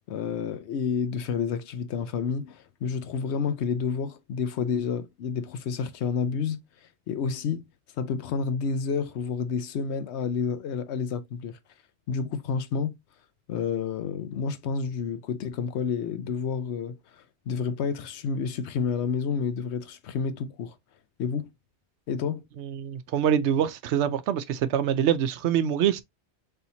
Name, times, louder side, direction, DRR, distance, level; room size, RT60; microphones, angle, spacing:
voice 1, 0.1-6.6 7.1-7.7 8.0-11.5 12.1-13.0 13.5-17.0 17.5-20.7 21.2-21.5 22.1-22.4, left 6 dB, 80° left, 0.9 m, -29 dB
voice 2, 22.6-26.0, right 9 dB, 80° right, 0.9 m, -25 dB
4.2 x 3.5 x 2.7 m
omnidirectional pair, 1.1 m